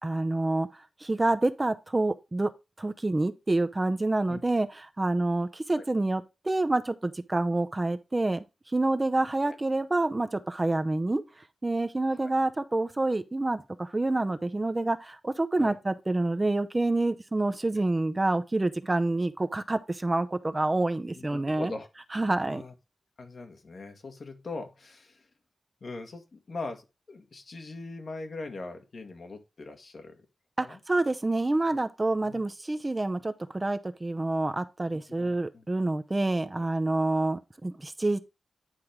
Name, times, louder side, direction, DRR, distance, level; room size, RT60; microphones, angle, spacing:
voice 1, 0.0-2.5 2.8-8.4 8.7-11.2 11.6-21.7 22.1-22.6 30.6-38.2, right 2 dB, 25° right, 0.6 m, -27 dB
voice 2, 21.1-21.9 22.5-22.7 23.2-25.3 25.8-30.2 30.6-30.8 31.7-31.8 32.2-32.4 34.9-35.6, left 3 dB, 60° left, 1.7 m, -41 dB
9.9 x 4.6 x 3.5 m
wide cardioid pair, 100°, 0 cm